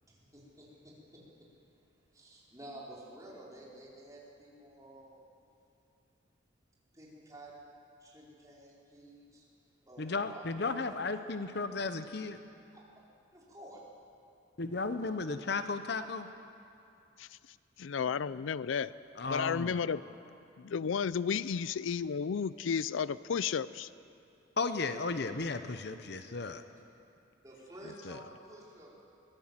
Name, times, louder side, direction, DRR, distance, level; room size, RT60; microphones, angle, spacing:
voice 1, 0.0-1.5 1.9-5.2 6.9-7.7 8.0-9.4 9.8-11.0 11.3-11.4 12.7-12.8 13.3-13.8 27.4-29.0, right 1 dB, 20° right, -5 dB, 4.4 m, -52 dB
voice 2, 10.0-12.4 14.6-16.3 19.1-19.8 24.6-26.6 28.0-28.2, left 3 dB, 55° left, 9 dB, 0.8 m, -34 dB
voice 3, 17.8-18.9 19.3-20.0 20.6-23.9, left 6 dB, 85° left, 17 dB, 0.4 m, -32 dB
23.0 x 16.5 x 7.5 m, 2.6 s
head